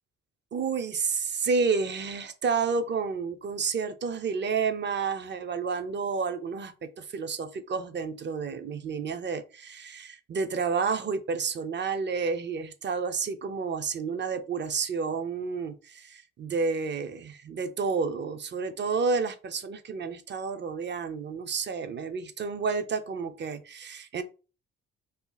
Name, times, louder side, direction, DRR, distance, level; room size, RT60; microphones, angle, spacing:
voice 1, 0.5-24.2, right 5 dB, 35° right, 0.5 m, -30 dB
2.7 x 2.4 x 3.9 m
cardioid pair, 90°, 30 cm